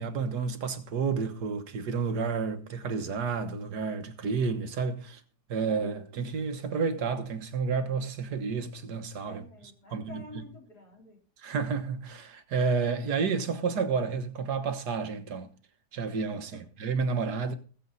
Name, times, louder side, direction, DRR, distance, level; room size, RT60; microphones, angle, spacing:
voice 1, 0.0-5.2 5.5-9.4 9.9-10.4 11.4-15.5 15.9-17.5, right 5 dB, 85° right, 1.9 m, -30 dB
voice 2, 9.3-11.2 16.5-16.6, left 2 dB, 75° left, 4.4 m, -49 dB
20.0 x 7.6 x 4.1 m
omnidirectional pair, 1.7 m